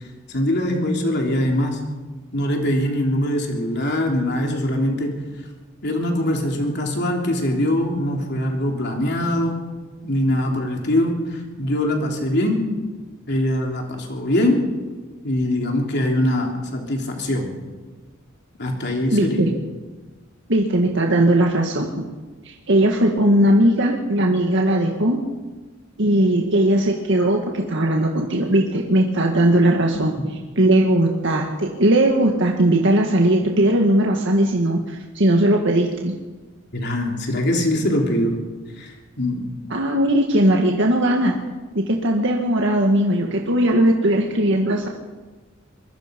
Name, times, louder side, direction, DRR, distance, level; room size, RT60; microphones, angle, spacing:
voice 1, 0.3-1.8 2.3-5.1 5.8-9.6 10.0-12.6 13.3-14.6 15.2-17.5 18.6-19.4 36.7-38.4 38.8-39.5, left 1 dB, 55° left, 1 dB, 3.5 m, -22 dB
voice 2, 19.1-19.5 20.5-22.0 22.4-25.2 26.0-30.1 30.6-36.1 39.7-41.4 41.8-44.9, right 1 dB, 60° right, 1 dB, 1.9 m, -18 dB
24.5 x 22.0 x 5.3 m, 1.3 s
head